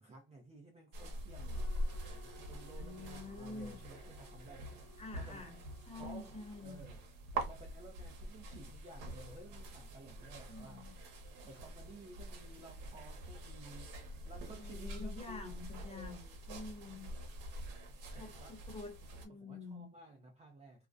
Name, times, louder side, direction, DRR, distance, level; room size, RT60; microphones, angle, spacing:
voice 1, 0.0-4.7 5.2-5.4 5.9-7.0 7.3-10.8 11.4-13.9 14.2-15.6 15.9-16.4 18.1-18.6 19.4-20.9, right 2 dB, 20° right, 0.4 m, -55 dB
sound 1, 0.9-19.3, right 1 dB, 70° right, 0.9 m, -45 dB
sound 2, 1.5-6.8, left 4 dB, 55° left, 0.4 m, -60 dB
voice 2, 2.8-3.8 5.0-5.6 5.8-6.8 10.5-11.0 14.6-16.2 16.5-17.1 18.1-19.0 19.2-19.9, left 3 dB, 20° left, 0.9 m, -47 dB
2.4 x 2.1 x 2.4 m
cardioid pair, 125°, 34 cm